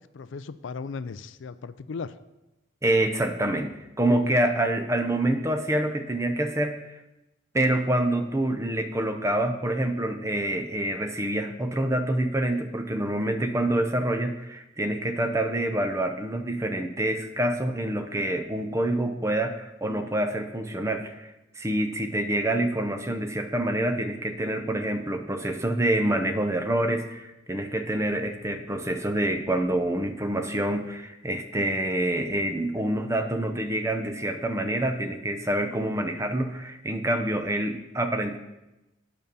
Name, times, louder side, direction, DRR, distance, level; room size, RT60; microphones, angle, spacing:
voice 1, 0.1-2.1, left 5 dB, 65° left, 14 dB, 0.4 m, -36 dB
voice 2, 2.8-6.8 7.5-38.4, right 1 dB, 15° right, 7 dB, 0.7 m, -27 dB
9.1 x 5.3 x 6.9 m, 0.96 s
head